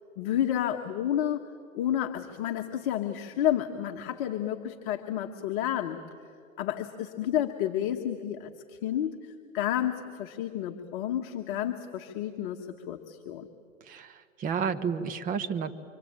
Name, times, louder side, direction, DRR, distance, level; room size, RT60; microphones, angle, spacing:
voice 1, 0.2-1.4 1.7-6.0 6.6-13.4, left 11 dB, 35° left, 4 dB, 1.5 m, -30 dB
voice 2, 13.8-15.7, right 6 dB, 20° right, 9 dB, 1.2 m, -31 dB
26.5 x 25.5 x 8.8 m, 2.3 s
hypercardioid pair, 135°, 41 cm